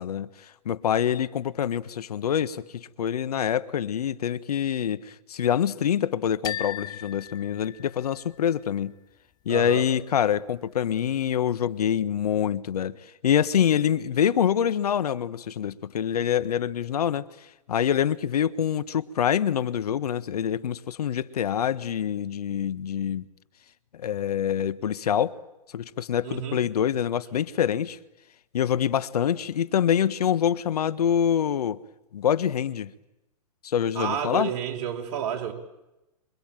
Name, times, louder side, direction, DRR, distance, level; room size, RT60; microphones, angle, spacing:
voice 1, 0.0-8.9 9.4-13.0 13.2-17.2 17.7-23.2 23.9-25.4 25.7-28.0 28.5-31.8 32.1-32.9 33.6-34.5, left 9 dB, 75° left, 1.5 m, -25 dB
sound 1, 6.4-8.4, left 11 dB, 20° left, 0.9 m, -37 dB
voice 2, 9.5-9.9 26.2-26.6 33.9-35.5, right 8 dB, 45° right, 5.6 m, -30 dB
27.0 x 24.0 x 9.1 m
hypercardioid pair, 130°, 20 cm